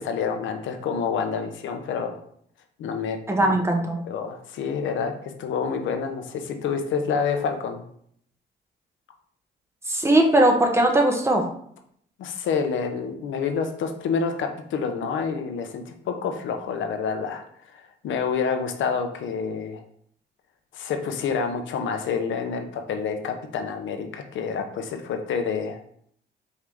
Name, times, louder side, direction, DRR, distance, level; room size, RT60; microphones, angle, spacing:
voice 1, 0.0-2.2 2.8-3.6 4.1-7.8 12.2-17.4 18.0-19.8 20.7-25.9, left 6 dB, 75° left, 5 dB, 0.7 m, -28 dB
voice 2, 3.3-4.0 9.9-11.5, right 1 dB, 15° right, 2 dB, 0.9 m, -19 dB
4.8 x 2.7 x 3.5 m, 0.65 s
cardioid pair, 90°, 20 cm